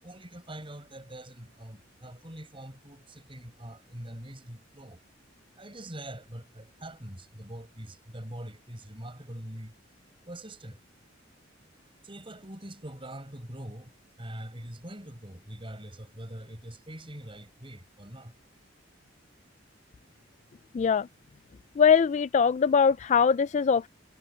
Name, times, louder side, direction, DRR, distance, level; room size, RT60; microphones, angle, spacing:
voice 1, 0.0-5.0 5.5-9.7 10.3-10.8 12.0-13.9 14.2-18.3, right 1 dB, 25° right, 6.7 m, -43 dB
voice 2, 20.7-21.1 21.8-23.9, left 6 dB, 35° left, 0.3 m, -22 dB
head